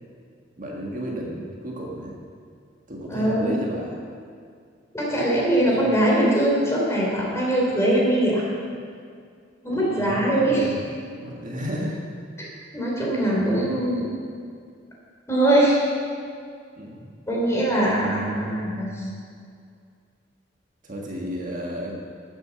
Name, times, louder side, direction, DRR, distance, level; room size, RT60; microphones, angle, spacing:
voice 1, 0.6-2.2 2.9-4.0 5.6-5.8 9.7-10.8 11.2-12.0 13.3-13.7 16.8-17.1 18.3-18.5 20.8-22.0, equal, 45° right, -2 dB, 1.7 m, -33 dB
voice 2, 3.1-3.6 4.9-8.4 9.6-10.7 12.4-12.5 12.7-14.1 15.3-15.8 17.3-19.1, right 1 dB, 15° left, -4 dB, 3.5 m, -22 dB
12.5 x 8.0 x 7.1 m, 2.2 s
head